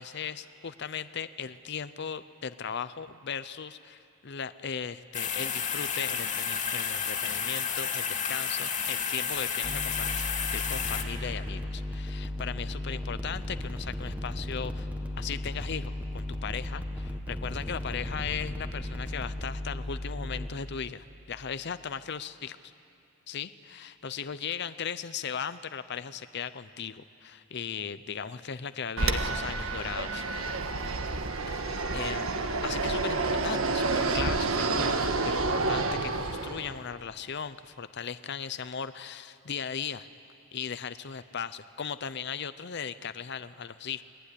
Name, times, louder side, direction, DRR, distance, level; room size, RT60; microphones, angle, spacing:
voice 1, 0.0-10.2 10.5-14.9 15.2-22.6 23.3-30.2 31.5-40.1 40.5-44.0, left 7 dB, 55° left, 13 dB, 0.6 m, -37 dB
sound 1, 5.1-11.0, left 7 dB, 35° left, 2.4 m, -31 dB
sound 2, 9.6-20.5, left 1 dB, 5° right, 1.4 m, -35 dB
Fixed-wing aircraft airplane, 29.0-36.8, right 3 dB, 85° right, 1.5 m, -29 dB
28.5 x 21.5 x 9.9 m, 2.6 s
head